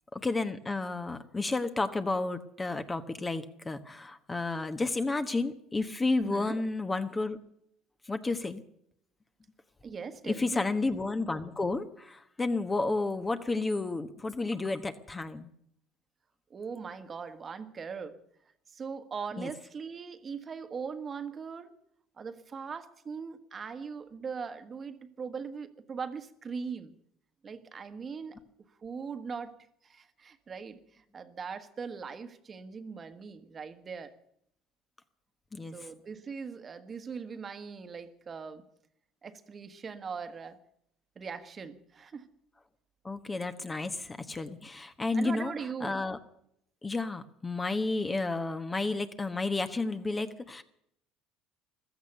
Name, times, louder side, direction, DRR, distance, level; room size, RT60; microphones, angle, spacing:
voice 1, 0.1-7.4 8.1-8.6 10.2-15.5 19.4-19.5 35.5-35.9 43.0-45.5 45.8-46.2 46.8-50.6, left 3 dB, 20° left, 1.1 m, -31 dB
voice 2, 6.2-6.6 9.8-10.7 16.5-18.2 18.7-21.7 22.2-26.9 27.4-28.4 28.8-29.6 29.8-34.1 35.7-38.6 39.2-40.6 41.1-42.3 45.1-46.0, right 5 dB, 35° right, 1.4 m, -40 dB
15.5 x 13.5 x 6.8 m
supercardioid pair, 85°, 0 cm